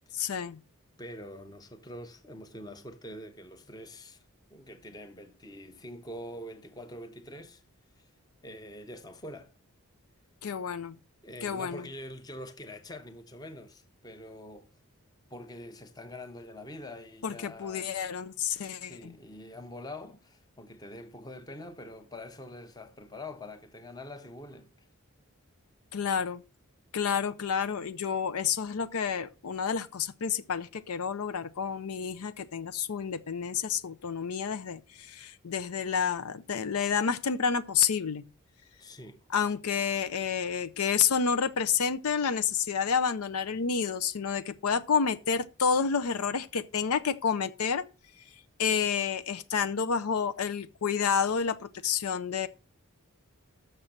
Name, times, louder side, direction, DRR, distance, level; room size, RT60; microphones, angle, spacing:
voice 1, 0.1-0.6 10.4-11.0 11.4-11.8 17.2-19.1 25.9-26.4 26.9-38.2 39.3-47.8 48.6-52.5, left 6 dB, 80° left, 0.6 m, -29 dB
voice 2, 1.0-4.2 4.5-7.6 8.0-8.1 8.4-9.5 11.2-14.7 15.3-17.9 18.8-24.7 38.8-39.3, left 1 dB, 15° left, 0.7 m, -45 dB
6.7 x 6.6 x 7.2 m
head